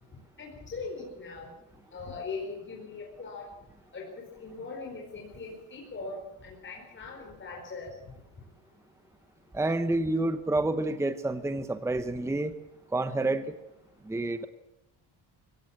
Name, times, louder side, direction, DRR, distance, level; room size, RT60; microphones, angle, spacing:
voice 1, 0.4-1.5 1.9-3.5 3.9-4.1 4.4-7.9, left 4 dB, 25° left, -2 dB, 4.8 m, -40 dB
voice 2, 9.5-12.5 12.9-13.5 14.1-14.5, right 2 dB, 5° right, 11 dB, 0.8 m, -28 dB
24.0 x 16.5 x 8.7 m, 0.88 s
cardioid pair, 170°, 45 cm